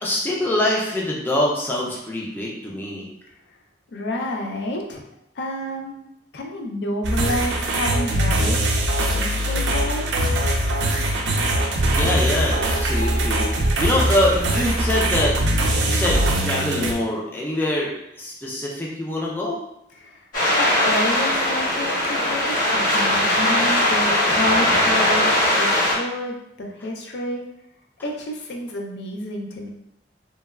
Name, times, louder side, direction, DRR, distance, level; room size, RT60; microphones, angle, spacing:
voice 1, 0.0-3.1 11.8-15.4 15.7-19.6, left 1 dB, 10° left, -4 dB, 0.4 m, -24 dB
voice 2, 3.9-5.0 5.4-6.0 6.3-8.6 9.1-10.1 19.9-20.2 20.6-25.3 25.6-27.4 28.0-29.7, left 1 dB, 70° left, 1 dB, 0.4 m, -29 dB
sound 1, 7.0-16.9, right 1 dB, 90° right, 0.4 m, -22 dB
sound 2, 20.3-26.0, left 1 dB, 50° left, 1.0 m, -20 dB
3.1 x 2.2 x 2.2 m, 0.81 s
head